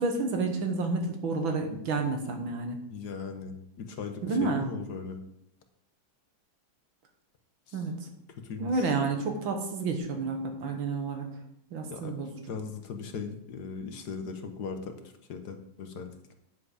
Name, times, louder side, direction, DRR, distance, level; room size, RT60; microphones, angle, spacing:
voice 1, 0.0-2.8 4.2-4.7 7.7-8.1 8.6-11.3 11.7-12.3, right 3 dB, 80° right, 4 dB, 2.2 m, -30 dB
voice 2, 2.9-5.2 7.7-7.8 8.4-8.9 11.9-12.1 12.5-16.3, left 5 dB, 60° left, 6 dB, 1.4 m, -39 dB
9.5 x 7.6 x 5.0 m, 0.78 s
omnidirectional pair, 2.1 m